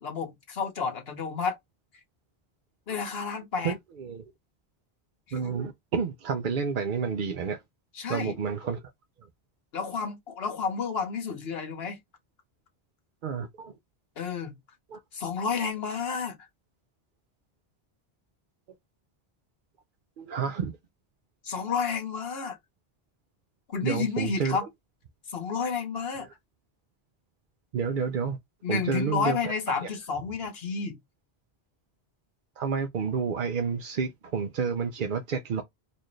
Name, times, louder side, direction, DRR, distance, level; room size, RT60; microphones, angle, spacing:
voice 1, 0.0-1.6 2.9-3.7 7.9-8.4 9.7-12.0 14.2-14.6 15.1-16.4 21.4-22.6 23.7-24.7 25.3-26.3 28.6-31.0, left 5 dB, 75° left, 1.3 m, -31 dB
voice 2, 3.6-4.2 5.3-7.6 8.1-8.8 13.2-13.7 14.9-15.0 20.2-20.7 23.8-24.6 27.7-28.4 28.7-29.5 29.8-29.9 32.6-35.6, right 6 dB, 60° right, 0.7 m, -30 dB
4.2 x 2.5 x 3.1 m
omnidirectional pair, 1.1 m